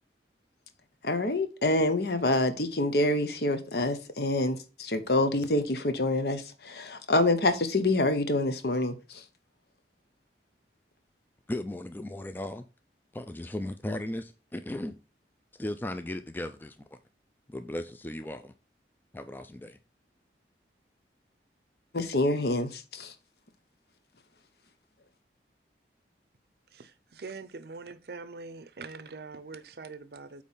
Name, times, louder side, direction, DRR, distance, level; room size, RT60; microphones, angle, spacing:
voice 1, 1.0-9.2 21.9-23.1, left 2 dB, 65° left, 1.0 m, -27 dB
voice 2, 11.5-12.7 13.1-14.9 15.6-16.8 17.5-18.5 19.1-19.8, left 1 dB, 10° left, 0.3 m, -36 dB
voice 3, 26.7-30.4, right 4 dB, 60° right, 0.6 m, -43 dB
8.2 x 3.1 x 5.5 m
head